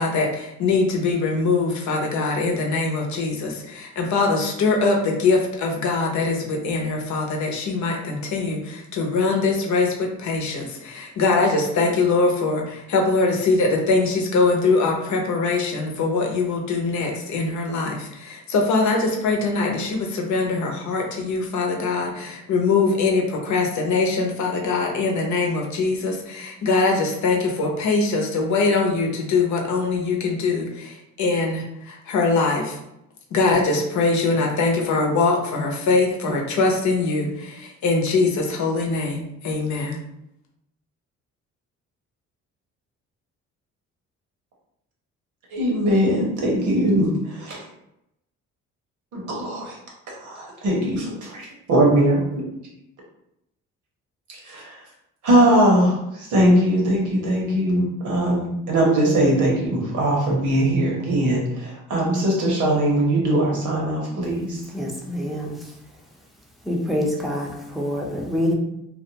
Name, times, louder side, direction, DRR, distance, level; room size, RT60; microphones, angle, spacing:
voice 1, 0.0-32.8 33.3-40.0, left 3 dB, 70° left, 0 dB, 0.7 m, -22 dB
voice 2, 45.5-47.6 49.1-49.8 50.2-52.2 54.5-54.8 55.2-64.6, right 1 dB, 75° right, -2 dB, 1.0 m, -20 dB
voice 3, 64.7-65.7 66.6-68.5, left 1 dB, ahead, -2 dB, 0.6 m, -26 dB
2.5 x 2.1 x 2.8 m, 0.83 s
cardioid pair, 90°, 30 cm